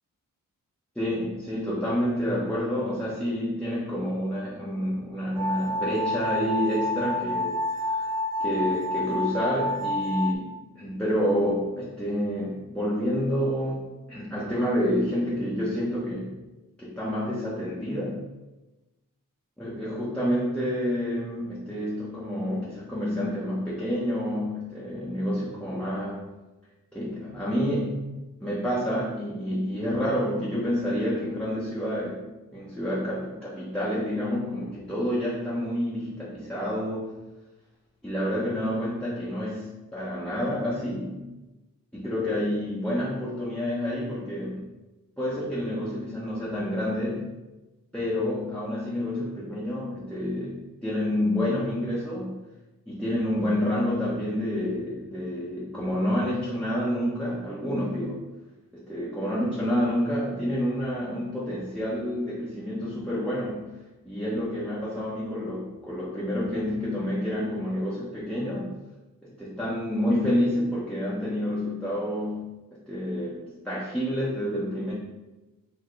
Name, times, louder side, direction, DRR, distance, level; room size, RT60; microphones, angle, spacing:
voice 1, 0.9-8.1 8.4-13.8 14.1-16.4 16.8-18.2 19.6-26.3 26.9-28.1 28.4-32.2 32.5-37.2 38.0-41.2 41.9-44.6 45.2-47.3 47.9-52.4 52.9-58.2 58.7-63.6 64.0-68.7 69.2-72.5 72.9-74.9, equal, 5° left, -8 dB, 1.0 m, -28 dB
sound 1, 5.4-10.3, left 1 dB, 75° right, 0.7 m, -29 dB
4.7 x 3.0 x 3.1 m, 1.1 s
cardioid pair, 65°, 33 cm